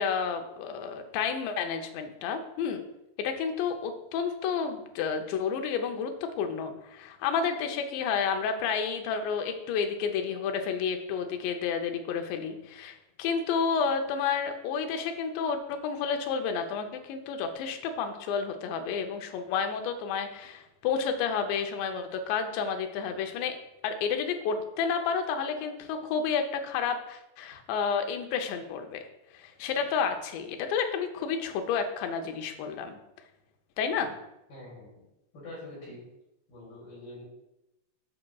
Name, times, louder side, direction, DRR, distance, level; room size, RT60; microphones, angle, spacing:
voice 1, 0.0-2.8 3.2-23.6 23.8-29.1 29.3-33.0 33.8-34.1, left 6 dB, 85° left, 5 dB, 2.9 m, -30 dB
voice 2, 34.5-34.9 35.3-36.0 36.5-37.2, left 1 dB, 60° left, -6 dB, 4.2 m, -44 dB
13.5 x 5.0 x 2.3 m, 0.90 s
omnidirectional pair, 4.9 m